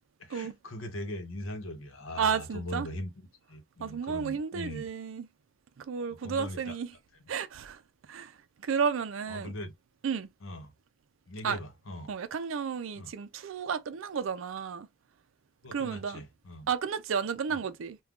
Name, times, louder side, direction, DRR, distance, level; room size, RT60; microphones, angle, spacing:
voice 1, 0.2-3.1 3.5-4.9 6.2-6.8 9.3-9.7 10.4-10.7 11.3-12.1 13.0-13.1 15.6-16.7 17.5-17.6, left 1 dB, 90° left, 0.8 m, -40 dB
voice 2, 2.2-2.9 3.8-5.3 5.8-6.9 7.3-7.8 8.1-8.3 8.6-9.5 10.0-10.3 11.4-11.6 12.1-14.9 15.7-16.2 16.7-18.0, right 6 dB, 80° right, 0.4 m, -32 dB
2.4 x 2.2 x 3.5 m
head